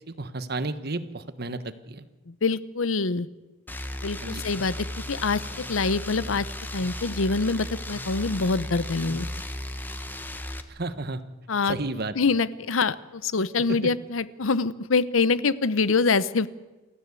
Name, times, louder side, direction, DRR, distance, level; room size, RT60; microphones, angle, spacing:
voice 1, 0.1-2.1 4.2-4.4 10.7-11.2 11.7-12.1 13.7-13.9, right 2 dB, 55° right, 12 dB, 1.2 m, -32 dB
voice 2, 2.3-3.3 4.0-6.5 6.7-9.3 11.5-11.8 12.2-16.5, left 4 dB, 90° left, 16 dB, 0.8 m, -25 dB
sound 1, 3.7-10.6, left 1 dB, 10° left, 1.2 m, -35 dB
28.5 x 13.5 x 8.3 m, 1.2 s
head